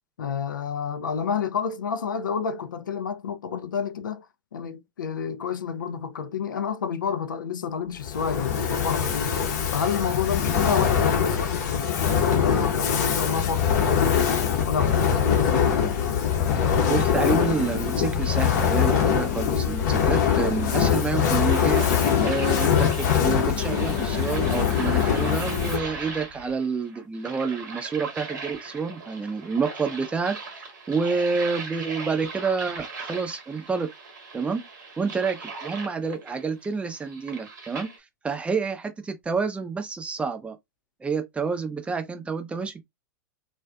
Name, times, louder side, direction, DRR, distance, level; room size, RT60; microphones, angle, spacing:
voice 1, 0.2-4.3 4.5-9.3 9.7-14.3 14.6-15.7, left 6 dB, 80° left, 0.4 m, -29 dB
Fire, 8.0-26.0, left 7 dB, 55° left, 0.8 m, -23 dB
voice 2, 16.6-21.8 22.2-33.9 34.3-34.6 35.0-37.9 38.2-40.6 41.0-42.8, right 5 dB, 10° right, 0.5 m, -29 dB
sound 1, 20.7-38.0, right 4 dB, 65° right, 1.0 m, -39 dB
2.4 x 2.3 x 2.3 m
hypercardioid pair, 105°, 10 cm